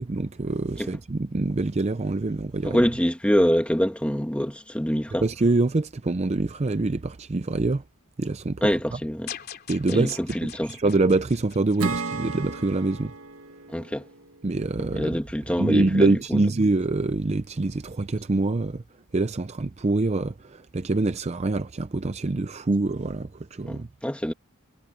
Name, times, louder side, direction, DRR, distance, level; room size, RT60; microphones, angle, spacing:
voice 1, 0.0-2.8 5.2-7.8 8.2-8.6 9.7-13.1 14.4-15.2 15.6-18.8 19.1-23.9, right 2 dB, 30° right, 0.5 m, -25 dB
voice 2, 2.6-5.3 8.6-9.3 9.9-10.7 13.7-14.1 14.9-16.4 23.7-24.3, equal, 5° left, 1.9 m, -25 dB
sound 1, 9.3-12.6, left 9 dB, 50° left, 3.0 m, -42 dB
Acoustic guitar / Strum, 11.8-15.2, right 3 dB, 75° right, 1.5 m, -34 dB
head